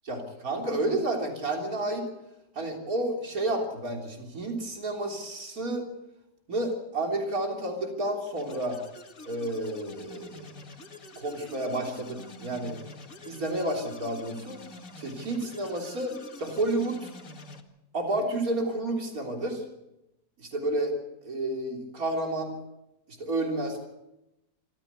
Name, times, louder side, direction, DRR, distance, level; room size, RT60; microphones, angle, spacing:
voice 1, 0.1-2.1 2.5-5.9 6.5-8.8 9.3-10.5 11.2-12.8 13.2-14.6 15.0-17.1 17.9-19.6 20.4-20.9 21.2-22.6 23.1-23.9, right 1 dB, 60° right, 2 dB, 4.0 m, -30 dB
sound 1, 8.4-17.6, left 3 dB, 55° left, 2.3 m, -47 dB
25.0 x 14.5 x 8.3 m, 0.90 s
omnidirectional pair, 1.7 m